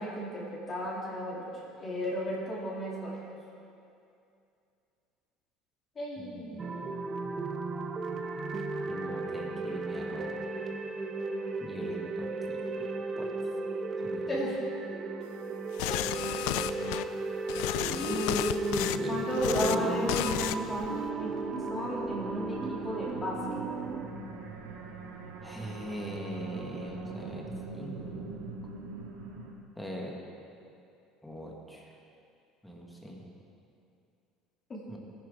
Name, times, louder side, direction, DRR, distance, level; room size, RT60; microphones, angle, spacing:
voice 1, 0.0-1.5 1.8-3.2 6.0-6.7 14.3-14.6 16.1-16.4 19.1-20.1 20.7-21.3 21.7-22.6 22.8-23.9 34.7-34.8, equal, 25° left, -6 dB, 2.8 m, -34 dB
voice 2, 6.2-6.6 8.9-10.5 11.6-12.9 13.2-13.3 14.0-14.4 17.7-20.1 25.4-27.5 27.7-28.5 29.8-30.2 31.2-31.9 32.6-33.2 34.9-35.0, equal, ahead, -2 dB, 1.5 m, -39 dB
sound 1, 6.6-24.1, right 3 dB, 25° right, 0.7 m, -35 dB
sound 2, 15.8-17.0 17.5-19.0 19.3-19.8 20.1-20.6 20.8-21.1, left 14 dB, 80° left, 0.4 m, -32 dB
sound 3, 18.6-29.5, right 2 dB, 75° right, 1.9 m, -41 dB
18.5 x 10.5 x 3.7 m, 2.6 s
cardioid pair, 155°, 0 cm